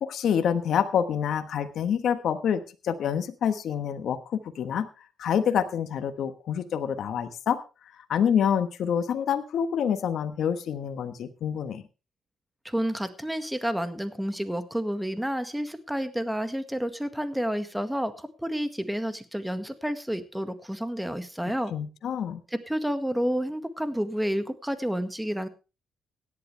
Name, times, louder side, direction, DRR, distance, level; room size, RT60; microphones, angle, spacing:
voice 1, 0.0-4.9 5.2-7.6 8.0-11.8 21.7-22.4, left 8 dB, 70° left, 9 dB, 1.3 m, -27 dB
voice 2, 12.7-21.7 22.7-25.5, equal, 5° right, 10 dB, 1.7 m, -30 dB
17.0 x 11.0 x 3.3 m, 0.31 s
cardioid pair, 90°, 0 cm